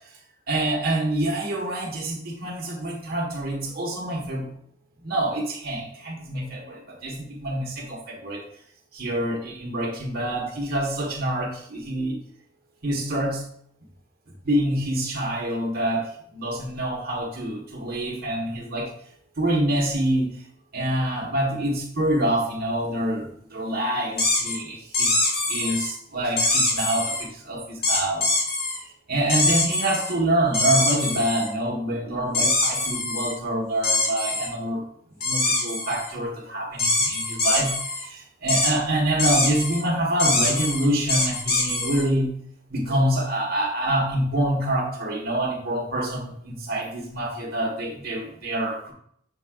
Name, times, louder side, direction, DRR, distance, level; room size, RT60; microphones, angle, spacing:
voice 1, 0.5-4.5 5.0-8.4 8.9-12.2 12.8-13.4 14.4-16.1 16.3-18.9 19.4-20.3 20.7-25.2 25.5-28.3 28.8-34.8 35.2-37.7 38.0-42.3 42.7-48.9, right 1 dB, 55° right, 0 dB, 1.6 m, -26 dB
sound 1, 24.2-24.6 24.9-25.9 26.4-27.2 27.8-28.8 29.3-30.1 30.5-31.5 32.3-33.3 33.8-34.5 35.2-36.1 36.8-38.0 38.5-38.7 39.2-39.8 40.2-42.0, left 2 dB, 55° left, 1.9 m, -23 dB
7.2 x 5.3 x 2.5 m, 0.65 s
head